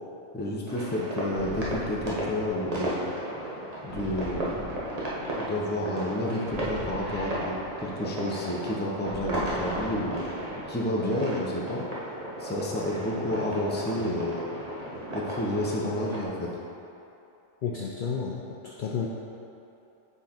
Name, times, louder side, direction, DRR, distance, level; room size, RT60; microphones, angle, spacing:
voice 1, 0.3-3.0 3.8-4.7 5.4-11.8 12.4-14.5 15.1-16.5, left 1 dB, 15° left, -3 dB, 0.4 m, -30 dB
sound 1, 0.7-16.2, right 1 dB, 30° right, 0.9 m, -35 dB
sound 2, 1.3-3.1 3.9-5.6 6.5-8.3 9.1-10.8, equal, 60° right, 1.5 m, -42 dB
voice 2, 17.6-19.1, left 6 dB, 80° left, -3 dB, 0.4 m, -32 dB
6.1 x 4.0 x 4.3 m, 2.8 s
omnidirectional pair, 1.4 m